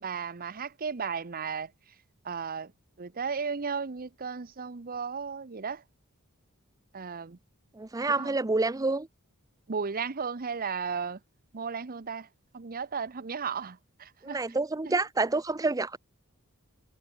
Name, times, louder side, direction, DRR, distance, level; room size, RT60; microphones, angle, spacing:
voice 1, 0.0-1.7 2.2-2.7 3.0-5.8 6.9-7.4 8.2-8.4 9.7-11.2 11.5-12.3 12.5-14.4 14.8-15.0, right 5 dB, 40° right, 0.8 m, -35 dB
voice 2, 7.8-9.1 14.2-16.0, right 3 dB, 15° right, 0.5 m, -28 dB
head